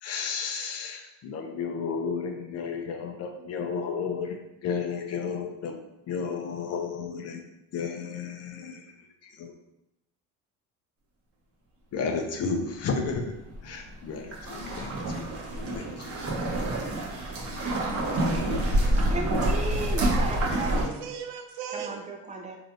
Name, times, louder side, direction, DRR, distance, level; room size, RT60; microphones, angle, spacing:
voice 1, 0.0-5.8 6.1-7.4 7.7-8.9 9.2-9.5 11.9-13.2 13.6-15.3 15.7-16.1, left 5 dB, 50° left, 4 dB, 0.6 m, -33 dB
sound 1, 13.1-13.2 13.5-20.9, right 1 dB, 40° right, 0.9 m, -27 dB
voice 2, 19.1-20.4 20.7-21.0 21.7-22.6, right 3 dB, 20° right, 1 dB, 0.5 m, -35 dB
voice 3, 19.8-22.0, right 8 dB, 80° right, 5 dB, 0.5 m, -37 dB
3.2 x 2.8 x 2.6 m, 0.86 s
supercardioid pair, 100°, 34 cm